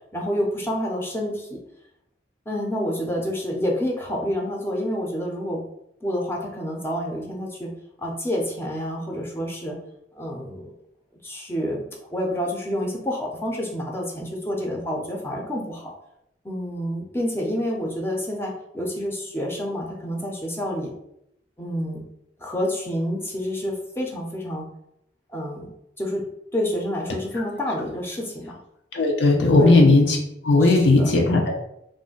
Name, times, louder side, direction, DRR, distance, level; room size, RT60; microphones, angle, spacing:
voice 1, 0.1-1.6 2.5-5.6 6.0-7.7 8.0-9.8 10.1-10.7 11.2-15.8 16.4-20.9 21.6-22.0 22.4-24.7 25.3-25.7 26.0-26.2 26.5-28.6 29.6-29.9 30.6-31.1, equal, 15° left, -1 dB, 0.5 m, -28 dB
voice 2, 28.9-30.2 30.4-31.5, left 2 dB, 80° left, 1 dB, 0.6 m, -16 dB
2.4 x 2.1 x 3.8 m, 0.78 s
head